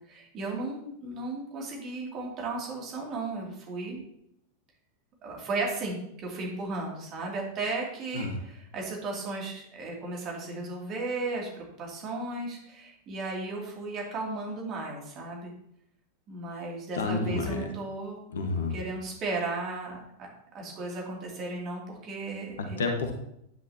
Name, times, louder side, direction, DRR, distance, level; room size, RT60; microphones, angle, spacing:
voice 1, 0.0-4.0 5.2-15.5 16.3-18.2 18.7-20.3 20.5-22.8, right 3 dB, 35° right, -1 dB, 2.8 m, -35 dB
voice 2, 16.9-17.7 18.3-18.8 22.6-23.1, left 3 dB, 65° left, 4 dB, 1.4 m, -30 dB
9.9 x 9.9 x 2.9 m, 0.75 s
figure-of-eight pair, 90°, 0 cm